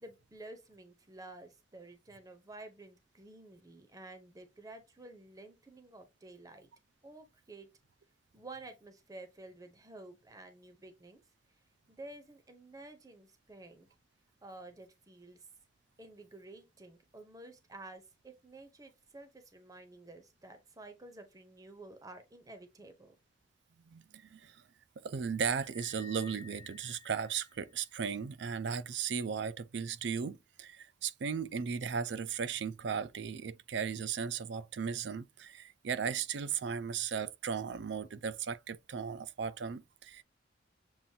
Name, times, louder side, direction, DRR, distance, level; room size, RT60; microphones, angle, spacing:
voice 1, 0.0-6.7 7.0-7.7 8.3-11.2 11.9-13.9 14.4-15.5 16.0-23.2, right 2 dB, 20° right, 0.7 m, -51 dB
voice 2, 23.9-24.6 25.0-40.2, right 6 dB, 65° right, 0.4 m, -36 dB
sound 1, 25.4-28.0, left 4 dB, 30° left, 0.4 m, -55 dB
7.1 x 2.6 x 2.7 m
head